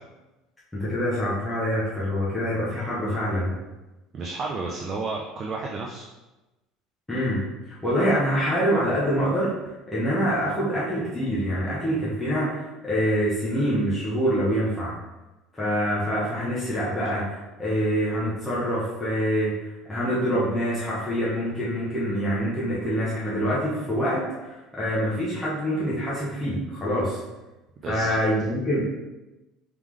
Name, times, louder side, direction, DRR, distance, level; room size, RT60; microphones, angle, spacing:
voice 1, 0.7-3.5 7.1-7.4 7.8-9.5 9.9-14.9 15.5-19.5 19.9-27.2 27.9-28.8, equal, 10° left, -9 dB, 0.9 m, -25 dB
voice 2, 4.1-6.1 27.8-28.1, right 3 dB, 25° right, -1 dB, 0.4 m, -32 dB
3.6 x 3.5 x 3.1 m, 1.0 s
cardioid pair, 175°, 0 cm